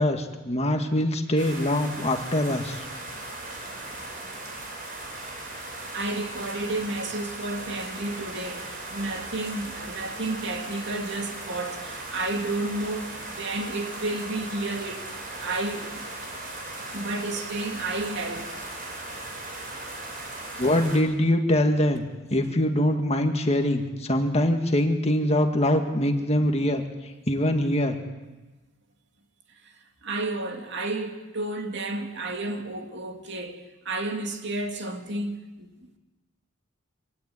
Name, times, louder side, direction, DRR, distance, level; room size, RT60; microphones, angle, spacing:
voice 1, 0.0-2.9 20.6-26.8 27.3-28.0, left 1 dB, 30° left, 2.0 m, -23 dB
sound 1, 1.4-21.0, right 2 dB, 45° right, 5.7 m, -38 dB
voice 2, 5.9-16.0 16.9-18.6 22.3-22.4 29.6-29.7 30.0-35.7, right 2 dB, 60° right, 2.5 m, -32 dB
24.5 x 16.5 x 9.8 m
head